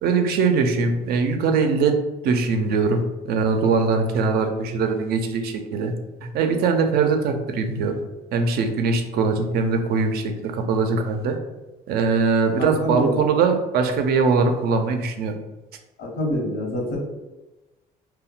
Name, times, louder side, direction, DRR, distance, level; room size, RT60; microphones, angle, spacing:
voice 1, 0.0-2.0 2.2-5.9 6.2-7.9 8.3-11.4 11.9-15.3, right 4 dB, 65° right, 6 dB, 0.4 m, -21 dB
voice 2, 12.6-13.2 16.0-17.0, left 1 dB, 75° left, -1 dB, 1.0 m, -26 dB
2.2 x 2.1 x 3.8 m, 1.1 s
cardioid pair, 110°, 17 cm